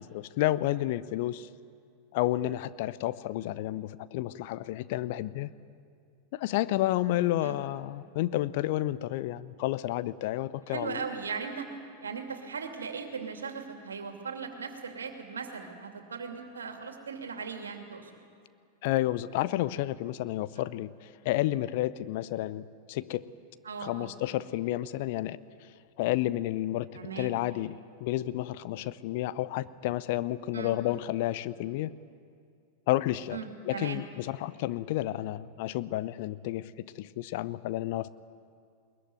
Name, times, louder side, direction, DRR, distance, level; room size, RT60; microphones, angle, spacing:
voice 1, 0.0-1.5 2.1-5.5 6.3-11.1 18.8-23.3 23.8-25.4 26.0-26.9 27.2-31.9 32.9-33.4 33.6-38.1, left 15 dB, 50° left, 16 dB, 0.7 m, -31 dB
voice 2, 10.7-11.7 12.0-18.1 23.6-24.1 26.9-27.3 30.5-30.8 33.3-34.0, right 5 dB, 70° right, 4 dB, 2.6 m, -38 dB
21.5 x 21.0 x 9.4 m, 2.3 s
figure-of-eight pair, 90°, 0 cm